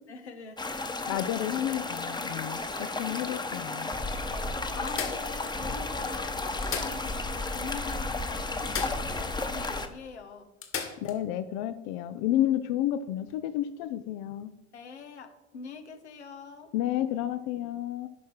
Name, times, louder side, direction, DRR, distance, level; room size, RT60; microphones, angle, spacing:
voice 1, 0.1-0.6 4.1-10.5 14.7-16.7, left 5 dB, 85° left, 7 dB, 1.2 m, -43 dB
sound 1, 0.6-9.9, left 2 dB, 15° left, 1.1 m, -33 dB
voice 2, 1.1-3.9 11.0-14.5 16.7-18.1, left 12 dB, 55° left, 12 dB, 0.6 m, -31 dB
sound 2, 1.5-3.0 3.7-3.8 4.0-4.1 4.9-5.9 6.5-7.5 7.7-7.8 8.7-9.5 9.8-9.9 10.6-11.2 13.2-13.3, left 6 dB, 40° left, 2.0 m, -38 dB
11.5 x 5.7 x 4.7 m, 0.92 s
hypercardioid pair, 70°, 33 cm